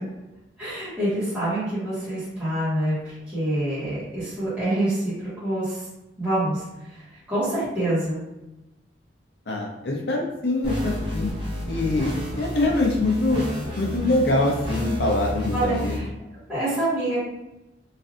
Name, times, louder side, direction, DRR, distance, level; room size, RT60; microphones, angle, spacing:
voice 1, 0.6-3.0 3.3-5.8 6.2-6.6 7.3-8.2 15.5-16.1 16.5-17.2, right 1 dB, 10° right, -15 dB, 1.2 m, -26 dB
voice 2, 9.5-11.3 11.7-13.4 13.8-16.0, left 2 dB, 65° left, -1 dB, 0.6 m, -24 dB
sound 1, 10.6-16.0, equal, 25° right, 0.7 m, -31 dB
3.2 x 2.5 x 2.4 m, 0.97 s
head